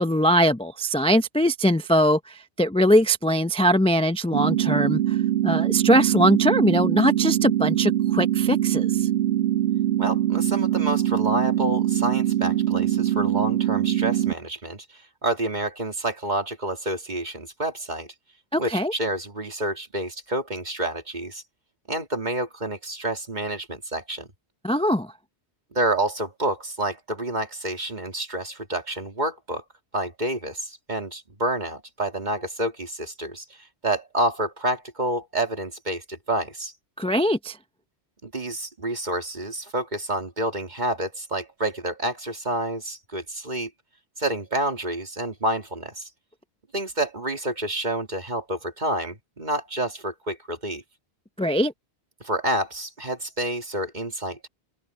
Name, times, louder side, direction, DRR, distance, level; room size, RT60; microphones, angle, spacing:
voice 1, 0.0-5.2 5.4-9.1 18.5-18.9 24.6-25.1 37.0-37.6 51.4-51.7, equal, 10° left, 0.4 m, -21 dB
sound 1, 4.3-14.3, right 12 dB, 85° right, 1.2 m, -23 dB
voice 2, 10.0-18.1 18.6-21.4 21.9-24.3 25.7-29.6 29.9-36.7 38.2-43.7 44.2-46.1 46.7-50.8 52.2-54.5, right 1 dB, 40° right, 2.5 m, -28 dB
omnidirectional pair, 1.1 m